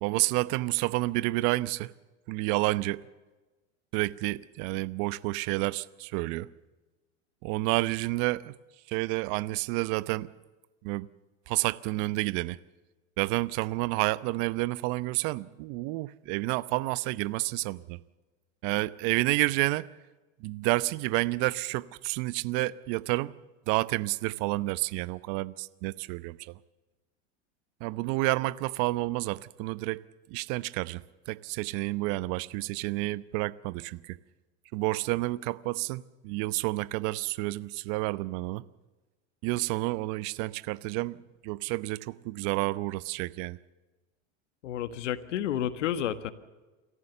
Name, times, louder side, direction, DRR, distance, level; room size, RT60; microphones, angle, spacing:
voice 1, 0.0-1.9 2.3-3.0 3.9-6.5 7.4-8.6 8.9-10.3 10.8-11.1 11.5-12.6 13.2-18.0 18.6-19.9 20.4-23.3 23.7-26.6 27.8-30.0 30.3-34.2 34.7-38.6 39.4-41.2 41.4-43.6, right 21 dB, 55° right, 0.9 m, -30 dB
voice 2, 44.6-46.3, left 10 dB, 80° left, 1.6 m, -30 dB
28.0 x 14.5 x 6.9 m
hypercardioid pair, 100°, 36 cm